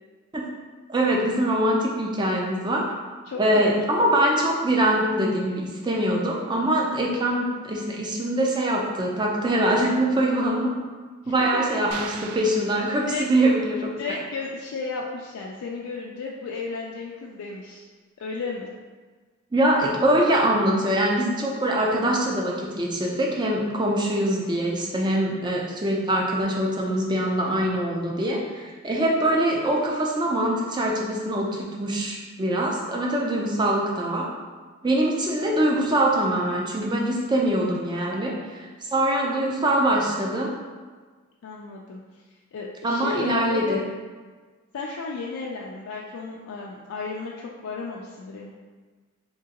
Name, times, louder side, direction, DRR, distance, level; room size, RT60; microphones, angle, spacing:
voice 1, 0.9-2.8 3.4-10.7 11.3-14.2 19.5-34.3 34.8-40.5 42.8-43.8, right 1 dB, 20° right, -1 dB, 0.4 m, -23 dB
voice 2, 3.3-4.0 11.2-11.6 13.1-13.2 14.0-17.8 18.2-18.7 41.4-43.8 44.7-48.5, left 4 dB, 75° left, -2 dB, 0.3 m, -34 dB
sound 1, 11.9-13.6, right 5 dB, 90° right, 0.3 m, -40 dB
3.6 x 2.9 x 2.8 m, 1.4 s
head